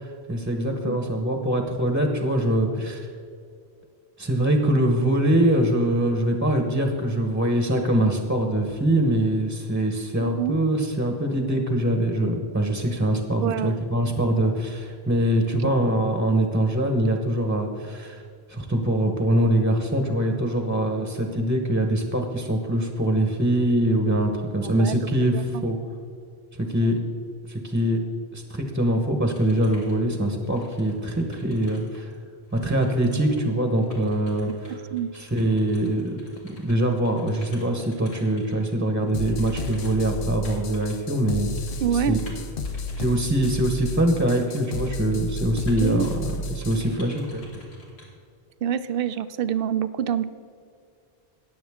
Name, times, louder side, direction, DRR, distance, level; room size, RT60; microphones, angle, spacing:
voice 1, 0.0-3.1 4.2-18.2 18.5-25.8 26.5-27.0 27.5-28.0 28.3-32.1 32.5-34.8 35.1-36.2 36.6-41.5 42.1-42.2 43.0-47.5, right 1 dB, 10° right, 3 dB, 0.9 m, -23 dB
voice 2, 10.2-10.6 13.4-13.8 24.6-24.9 25.3-25.6 26.6-26.9 34.5-34.6 34.9-35.1 41.8-42.2 45.8-46.1 48.6-50.2, right 8 dB, 65° right, 13 dB, 0.7 m, -26 dB
sound 1, 29.3-32.2 32.4-38.7 39.0-43.1 43.3-43.5 43.8-43.9 44.2-45.3 45.5-48.0, equal, 80° left, 2.9 m, -47 dB
sound 2, 39.1-46.8, left 2 dB, 65° left, 0.9 m, -32 dB
20.0 x 7.3 x 3.6 m, 2.3 s
omnidirectional pair, 1.1 m